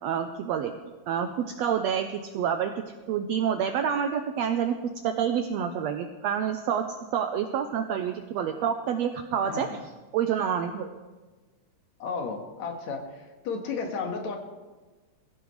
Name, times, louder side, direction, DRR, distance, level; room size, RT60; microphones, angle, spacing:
voice 1, 0.0-0.7 1.1-4.8 5.0-6.8 7.1-9.7 10.1-11.0, right 8 dB, 75° right, 6 dB, 1.6 m, -28 dB
voice 2, 9.4-9.8 12.0-14.4, left 5 dB, 65° left, 3 dB, 2.8 m, -33 dB
22.5 x 15.5 x 3.2 m, 1.3 s
omnidirectional pair, 3.6 m